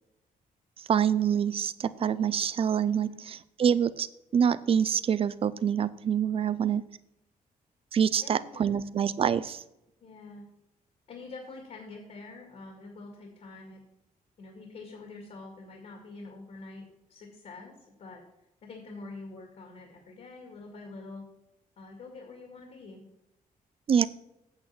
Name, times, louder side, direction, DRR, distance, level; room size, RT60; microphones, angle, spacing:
voice 1, 0.8-4.1 4.3-6.8 7.9-9.6 23.9-24.1, right 8 dB, 40° right, 16 dB, 0.5 m, -26 dB
voice 2, 6.5-6.8 8.2-8.9 10.0-10.5 11.1-13.8 14.4-18.2 18.6-21.2 21.8-23.0, left 3 dB, 55° left, 2 dB, 2.2 m, -46 dB
8.8 x 8.2 x 4.3 m, 0.86 s
wide cardioid pair, 160°, 15 cm